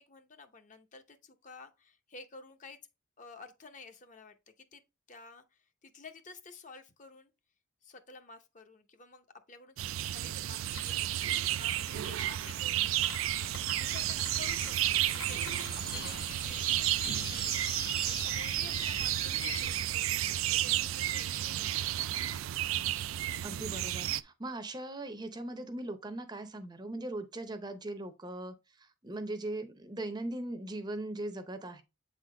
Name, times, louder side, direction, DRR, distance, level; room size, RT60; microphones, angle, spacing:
voice 1, 0.0-2.8 3.2-4.8 5.1-7.3 7.8-13.4 13.8-22.4, left 4 dB, 40° left, 0.7 m, -52 dB
sound 1, 9.8-24.2, right 13 dB, 90° right, 0.4 m, -32 dB
sound 2, 10.6-18.4, left 4 dB, 75° left, 1.2 m, -50 dB
sound 3, 13.9-19.8, left 5 dB, 20° left, 0.3 m, -44 dB
voice 2, 15.9-16.2 23.4-31.8, right 1 dB, 20° right, 0.6 m, -40 dB
8.1 x 3.8 x 3.3 m
head